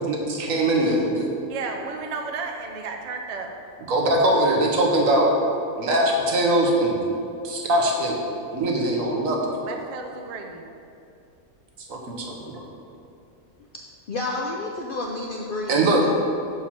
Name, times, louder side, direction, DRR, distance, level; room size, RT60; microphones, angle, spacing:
voice 1, 0.0-1.3 3.9-5.3 5.8-7.0 7.4-8.2 8.5-9.5 11.9-12.7 15.7-16.1, right 1 dB, 75° right, -1 dB, 1.4 m, -21 dB
voice 2, 1.5-3.5 9.6-10.6, right 4 dB, 45° right, 3 dB, 0.5 m, -33 dB
voice 3, 14.1-16.1, left 2 dB, 65° left, -1 dB, 0.5 m, -30 dB
5.7 x 4.8 x 6.1 m, 2.6 s
omnidirectional pair, 1.4 m